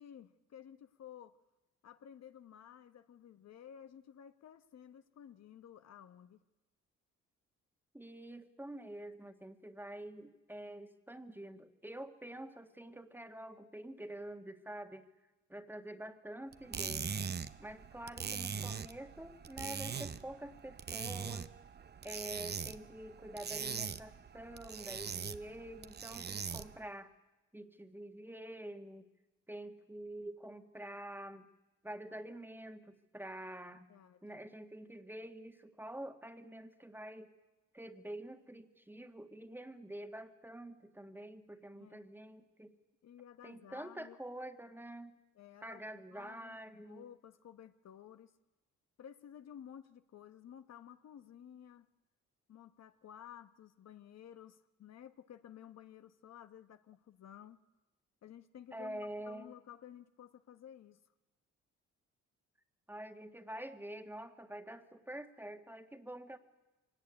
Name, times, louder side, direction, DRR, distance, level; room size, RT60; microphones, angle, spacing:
voice 1, 0.0-1.4 1.8-6.4 33.9-34.4 41.7-42.0 43.0-44.2 45.3-48.3 49.0-51.9 52.5-57.6 58.2-61.0, left 9 dB, 60° left, 10 dB, 1.0 m, -54 dB
voice 2, 7.9-15.1 15.5-17.3 17.6-21.5 22.0-27.1 27.5-29.1 29.5-31.4 31.8-33.8 34.2-37.3 37.7-42.7 43.4-45.2 45.6-47.0 58.7-59.5 62.9-66.4, right 1 dB, 5° right, 8 dB, 1.8 m, -47 dB
sound 1, 16.5-26.9, right 6 dB, 35° right, 0.8 m, -42 dB
23.5 x 18.0 x 9.7 m, 1.1 s
cardioid pair, 90°, 30 cm